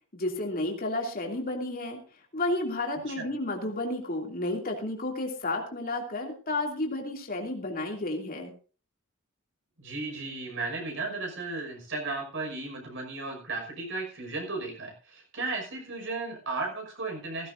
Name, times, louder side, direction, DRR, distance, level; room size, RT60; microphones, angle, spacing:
voice 1, 0.1-2.0 2.3-8.5, left 2 dB, 45° left, 1 dB, 2.8 m, -31 dB
voice 2, 9.8-17.5, right 3 dB, 60° right, 2 dB, 5.8 m, -35 dB
16.0 x 16.0 x 2.7 m, 0.38 s
head